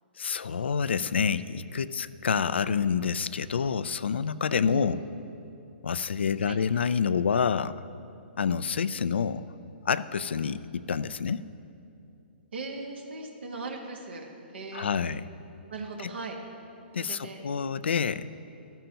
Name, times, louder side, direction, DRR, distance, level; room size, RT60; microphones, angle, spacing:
voice 1, 0.2-5.0 5.8-7.9 8.4-9.4 9.9-11.4 14.7-15.2 16.0-16.1 16.9-18.3, left 6 dB, 80° left, 16 dB, 0.4 m, -28 dB
voice 2, 4.6-5.1 6.4-6.6 12.5-14.9 15.7-16.4 17.0-17.4, right 3 dB, 75° right, 1 dB, 1.4 m, -38 dB
13.5 x 13.0 x 2.9 m, 2.7 s
hypercardioid pair, 130°, 6 cm